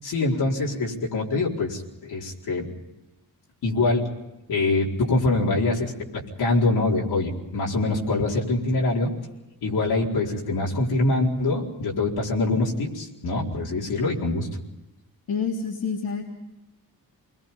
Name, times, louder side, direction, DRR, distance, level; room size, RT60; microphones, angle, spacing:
voice 1, 0.0-2.7 3.6-4.1 4.5-9.1 9.6-14.5, left 2 dB, 90° left, -3 dB, 4.6 m, -24 dB
voice 2, 15.3-16.2, left 5 dB, 70° left, -1 dB, 3.6 m, -27 dB
28.5 x 21.5 x 5.5 m, 0.97 s
cardioid pair, 95°, 37 cm